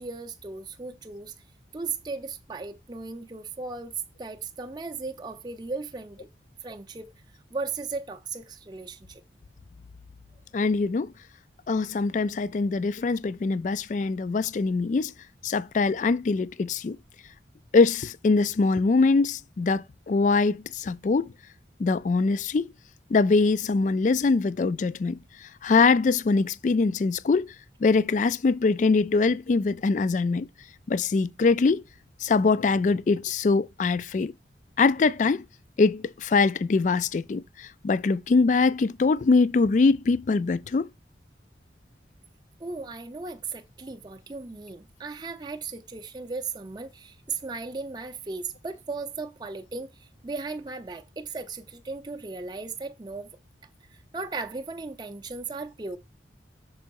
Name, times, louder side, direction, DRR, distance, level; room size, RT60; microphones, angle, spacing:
voice 1, 0.0-1.3 1.7-6.3 6.6-7.1 7.5-9.2 42.6-53.3 53.9-56.0, right 4 dB, 25° right, 0.5 m, -36 dB
voice 2, 10.5-11.1 11.7-15.1 15.4-17.0 17.7-21.3 21.8-22.7 23.1-27.5 27.8-30.5 30.9-31.8 32.2-34.3 34.8-35.4 35.8-40.9, left 4 dB, 45° left, 0.3 m, -23 dB
6.1 x 4.6 x 4.6 m
head